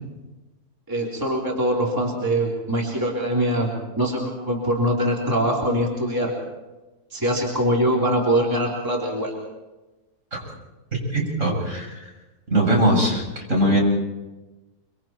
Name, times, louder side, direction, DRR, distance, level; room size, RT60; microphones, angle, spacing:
voice 1, 0.9-3.7 3.9-6.3 7.1-9.3, right 1 dB, 10° right, -3 dB, 3.6 m, -23 dB
voice 2, 11.1-12.1 12.5-13.2 13.5-13.8, right 1 dB, 50° right, -1 dB, 8.0 m, -20 dB
26.0 x 25.5 x 4.5 m, 1.1 s
omnidirectional pair, 1.7 m